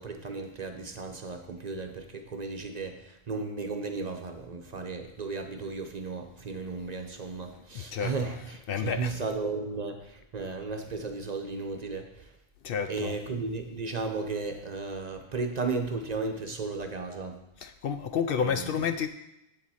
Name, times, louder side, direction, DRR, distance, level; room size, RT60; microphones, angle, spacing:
voice 1, 0.0-12.3 12.9-17.4 18.4-18.8, right 4 dB, 45° right, 5 dB, 0.8 m, -35 dB
voice 2, 7.7-8.1 8.7-9.1 12.6-13.2 17.6-19.1, left 7 dB, 65° left, 9 dB, 0.7 m, -30 dB
7.7 x 7.6 x 4.2 m, 0.85 s
omnidirectional pair, 1.1 m